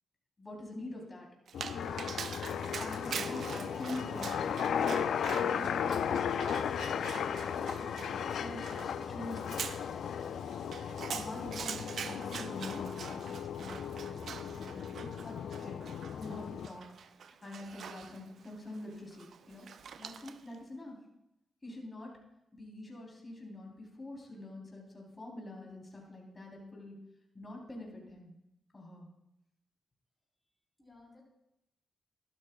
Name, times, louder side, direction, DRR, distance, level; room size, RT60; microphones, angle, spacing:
voice 1, 0.4-1.3 2.7-7.3 7.6-9.5 11.1-16.9 17.2-19.7 20.0-21.0 21.6-22.1 22.5-27.0 27.3-28.3 28.7-29.1, left 2 dB, 30° left, -2 dB, 3.4 m, -46 dB
sound 1, 1.5-16.7, left 8 dB, 80° left, 0.4 m, -36 dB
Dog, 1.5-20.6, right 7 dB, 70° right, 0.4 m, -45 dB
voice 2, 1.7-3.0 30.8-31.2, left 2 dB, 15° left, -3 dB, 3.8 m, -51 dB
13.0 x 12.0 x 2.3 m, 0.86 s
supercardioid pair, 55°, 0 cm